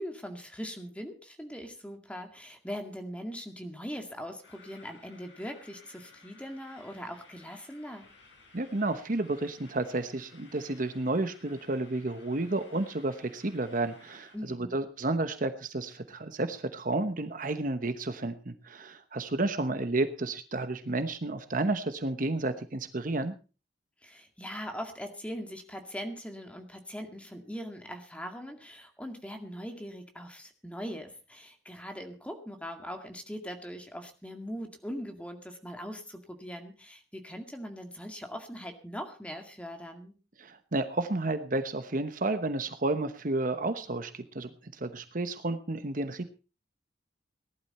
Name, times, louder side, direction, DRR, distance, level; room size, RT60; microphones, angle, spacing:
voice 1, 0.0-8.1 14.3-14.7 24.0-40.1, equal, 5° left, 4 dB, 2.2 m, -41 dB
sound 1, 4.4-14.4, left 4 dB, 80° left, 5.2 m, -57 dB
voice 2, 8.5-23.3 40.4-46.3, right 2 dB, 50° right, 10 dB, 1.0 m, -31 dB
18.5 x 12.0 x 4.3 m, 0.35 s
head